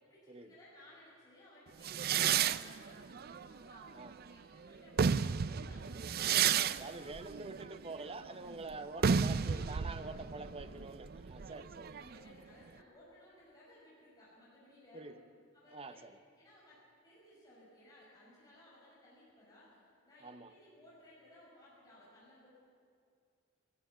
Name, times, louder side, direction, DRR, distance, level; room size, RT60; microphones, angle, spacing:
voice 1, 0.1-7.1 8.1-8.2 9.5-10.0 10.3-11.5 12.0-15.1 15.5-16.0 16.4-22.5, left 1 dB, 20° left, -7 dB, 5.6 m, -60 dB
sound 1, 1.8-4.3 4.8-12.3, right 7 dB, 50° right, 0.4 m, -33 dB
voice 2, 6.7-12.1 14.9-15.2 15.7-16.2 20.2-20.5, right 3 dB, 30° right, 10 dB, 0.8 m, -46 dB
20.5 x 14.0 x 9.3 m, 2.3 s
head